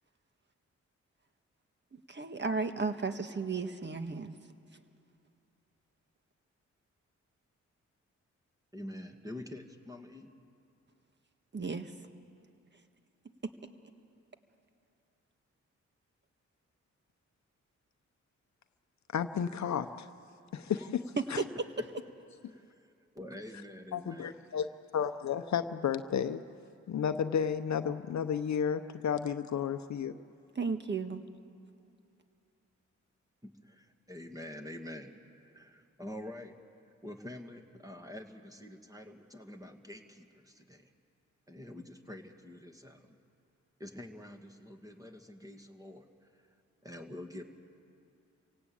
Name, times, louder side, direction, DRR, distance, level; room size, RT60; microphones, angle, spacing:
voice 1, 1.9-4.3 11.5-11.9 21.2-21.7 30.5-31.2, right 4 dB, 35° right, 8 dB, 1.6 m, -34 dB
voice 2, 8.7-10.3 21.8-21.9 22.5-24.4 33.4-35.1 35.4-36.6 37.0-40.9 41.5-43.2 43.8-46.3 46.8-47.4, left 1 dB, 10° right, 4 dB, 2.1 m, -46 dB
voice 3, 19.1-20.1 20.5-21.0 21.3-21.4 23.9-24.7 24.9-26.4 26.9-30.2, left 8 dB, 65° left, 9 dB, 0.8 m, -32 dB
27.0 x 17.5 x 8.8 m, 2.5 s
cardioid pair, 65°, 30 cm